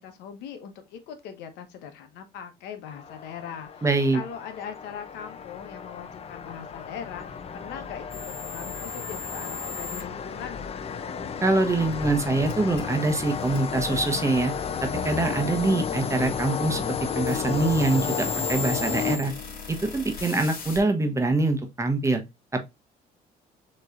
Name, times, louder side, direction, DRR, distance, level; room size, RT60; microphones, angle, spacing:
voice 1, 0.0-3.8 4.1-10.7, left 8 dB, 85° left, 1.0 m, -40 dB
sound 1, 2.9-19.7, left 7 dB, 35° left, 0.6 m, -33 dB
voice 2, 3.8-4.2 11.4-14.5 14.8-19.3 19.7-22.2 22.5-22.6, right 2 dB, 15° right, 0.9 m, -24 dB
sound 2, 8.1-10.0 12.5-20.8, left 4 dB, 60° left, 2.2 m, -39 dB
6.5 x 3.1 x 2.4 m
cardioid pair, 110°, 17 cm